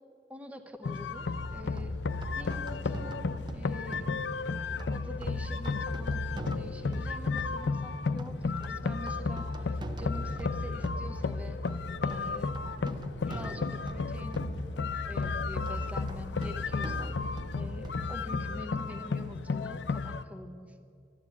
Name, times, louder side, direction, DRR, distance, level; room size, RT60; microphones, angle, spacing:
voice 1, 0.3-1.9 2.3-4.1 4.9-12.5 13.2-14.4 15.1-17.1 17.5-20.9, left 1 dB, 10° right, 7 dB, 0.8 m, -46 dB
sound 1, 0.8-20.2, left 4 dB, 80° left, 0.5 m, -33 dB
sound 2, 1.4-18.6, right 2 dB, 25° right, 0.5 m, -43 dB
12.5 x 11.0 x 8.3 m, 2.5 s
head